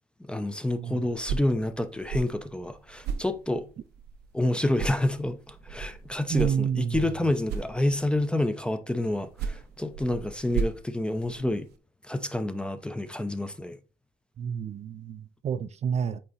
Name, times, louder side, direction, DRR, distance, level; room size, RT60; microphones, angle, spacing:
voice 1, 0.2-3.7 4.3-11.7 12.0-13.8, left 1 dB, 5° left, 0.6 m, -28 dB
sound 1, 1.1-4.5 4.7-8.3 9.1-11.8, right 6 dB, 75° right, 0.8 m, -36 dB
voice 2, 6.3-7.0 14.4-16.2, right 7 dB, 40° right, 0.5 m, -29 dB
8.5 x 2.9 x 4.1 m
cardioid pair, 110°, 17 cm